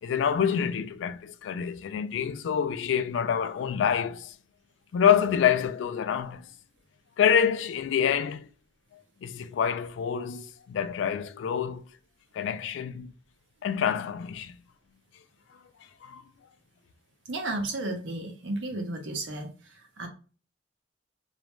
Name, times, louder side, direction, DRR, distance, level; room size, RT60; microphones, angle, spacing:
voice 1, 0.0-4.3 4.9-6.5 7.2-8.5 9.2-11.8 12.3-13.1 13.6-14.6 16.0-16.2, left 8 dB, 70° left, 0.3 m, -27 dB
voice 2, 17.3-20.1, right 2 dB, 75° right, 0.7 m, -33 dB
2.5 x 2.1 x 3.0 m
head